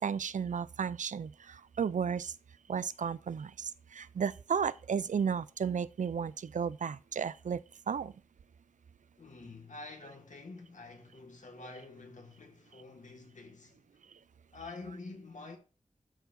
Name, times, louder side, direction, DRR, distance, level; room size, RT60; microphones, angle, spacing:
voice 1, 0.0-2.3 2.7-7.6 7.9-8.1, right 7 dB, 90° right, 0.4 m, -33 dB
voice 2, 9.2-13.9 14.5-15.6, left 3 dB, 80° left, 1.8 m, -48 dB
13.0 x 4.6 x 2.7 m
wide cardioid pair, 65°, 13 cm